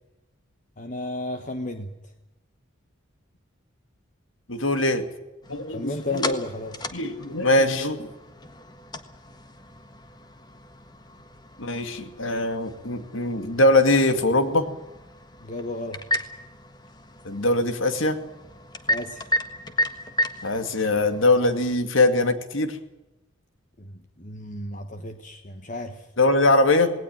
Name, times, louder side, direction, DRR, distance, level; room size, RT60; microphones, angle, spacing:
voice 1, 0.8-2.1 5.7-6.9 15.4-16.1 18.9-19.3 23.8-26.1, left 2 dB, 40° left, 7 dB, 1.3 m, -33 dB
voice 2, 4.5-5.0 5.5-6.3 6.9-8.0 11.6-14.7 17.2-18.2 20.4-22.8 26.2-26.9, left 2 dB, 75° left, 9 dB, 2.4 m, -22 dB
sound 1, 5.4-21.8, left 1 dB, 20° left, 1.5 m, -34 dB
19.0 x 18.5 x 9.1 m, 0.99 s
head